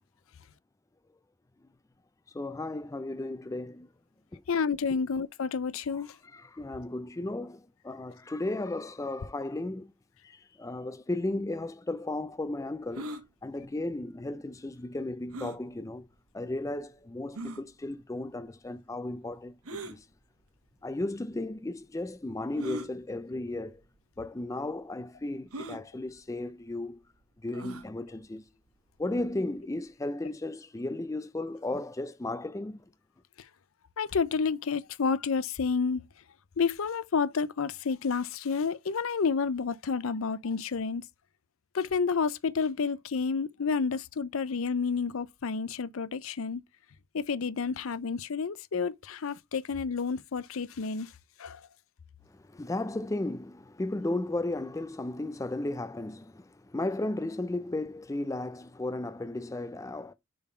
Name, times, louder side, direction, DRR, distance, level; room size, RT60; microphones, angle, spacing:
voice 1, 2.3-3.9 4.3-4.4 4.9-5.0 6.3-9.9 10.3-13.1 13.4-16.1 16.3-20.0 20.8-23.8 24.2-27.0 27.4-28.4 29.0-32.8 52.5-60.1, left 2 dB, 15° left, 0.4 m, -35 dB
voice 2, 4.5-6.1 34.0-36.0 36.6-41.0 41.7-46.6 47.1-51.1 51.4-51.6, left 5 dB, 70° left, 0.5 m, -30 dB
sound 1, 12.9-13.2 15.3-15.6 16.4-16.5 17.4-17.6 19.6-20.0 21.0-21.1 22.6-22.9 23.8-24.0 24.2-24.3 25.5-25.8 27.5-27.9, right 1 dB, 80° right, 1.1 m, -39 dB
7.0 x 4.0 x 4.3 m
head